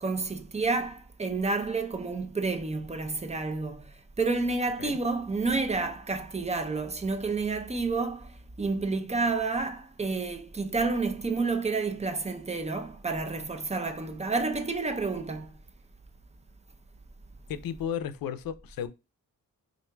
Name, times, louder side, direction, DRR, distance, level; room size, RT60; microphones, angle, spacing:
voice 1, 0.0-3.9 4.2-15.5, right 3 dB, 20° right, 0.5 m, -30 dB
voice 2, 17.5-18.9, left 8 dB, 75° left, 0.5 m, -34 dB
4.3 x 2.6 x 2.2 m
cardioid pair, 75°, 35 cm